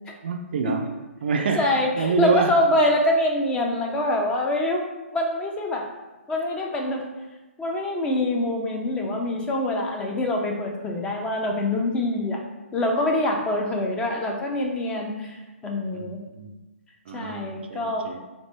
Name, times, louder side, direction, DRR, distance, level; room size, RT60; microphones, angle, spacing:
voice 1, 0.2-0.8 1.2-2.5 15.9-16.5 17.1-18.2, right 5 dB, 50° right, 5 dB, 0.4 m, -27 dB
voice 2, 1.6-4.8 5.1-5.9 6.3-7.0 7.6-12.4 12.7-16.2 17.1-18.1, left 1 dB, 15° left, 0 dB, 0.5 m, -25 dB
4.3 x 2.5 x 3.2 m, 1.1 s
figure-of-eight pair, 130°, 7 cm